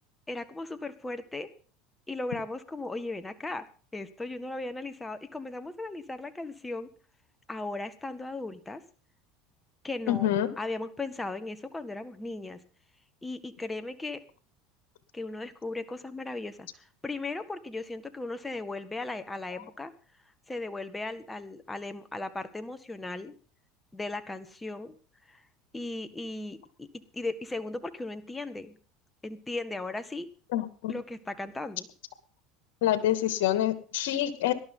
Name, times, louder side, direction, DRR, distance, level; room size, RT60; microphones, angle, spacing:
voice 1, 0.3-1.5 2.1-3.7 3.9-6.9 7.5-8.8 9.8-10.3 10.6-12.6 13.2-14.2 15.1-16.7 17.0-19.9 20.5-23.3 23.9-25.0 25.3-25.4 25.7-26.9 27.1-28.8 29.2-30.3 30.9-31.9, left 2 dB, 15° left, 10 dB, 1.7 m, -37 dB
voice 2, 10.1-10.5 30.5-30.9 32.8-34.5, left 12 dB, 80° left, 10 dB, 2.2 m, -26 dB
18.5 x 12.5 x 3.9 m, 0.39 s
supercardioid pair, 95°, 0 cm